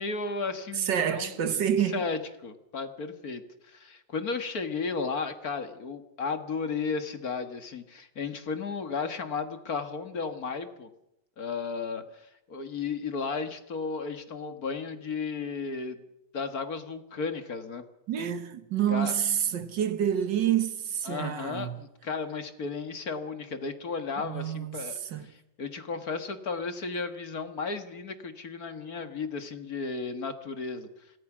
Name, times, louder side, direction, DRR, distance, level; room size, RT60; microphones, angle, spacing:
voice 1, 0.0-1.5 1.8-10.9 11.4-16.0 16.3-17.8 18.9-19.2 21.0-30.9, left 4 dB, 50° left, 2.0 m, -34 dB
voice 2, 0.8-2.1 18.1-21.8 24.2-25.3, right 9 dB, 65° right, 1.8 m, -28 dB
26.0 x 18.5 x 6.1 m
omnidirectional pair, 2.2 m